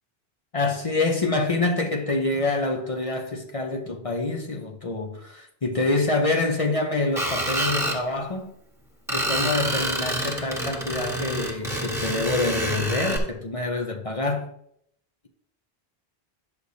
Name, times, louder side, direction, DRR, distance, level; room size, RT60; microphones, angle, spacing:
voice 1, 0.5-8.5 9.1-14.5, left 2 dB, 35° left, 0.7 m, -26 dB
Screech, 7.2-8.0 9.1-13.2, right 1 dB, 5° right, 1.3 m, -27 dB
9.8 x 6.4 x 2.7 m
omnidirectional pair, 1.1 m